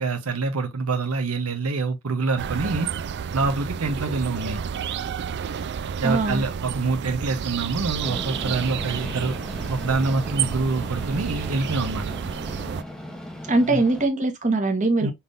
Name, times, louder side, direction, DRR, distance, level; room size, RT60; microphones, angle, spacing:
voice 1, 0.0-2.9 3.3-4.6 6.0-9.4 9.7-12.0 13.7-13.8 15.0-15.1, right 3 dB, 75° right, 0.8 m, -26 dB
sound 1, 2.4-12.8, right 7 dB, 50° right, 0.4 m, -31 dB
voice 2, 6.0-6.4 13.5-15.1, right 2 dB, 35° right, 1.2 m, -21 dB
Train, 8.0-14.1, equal, 5° left, 0.8 m, -37 dB
5.8 x 3.6 x 2.5 m
head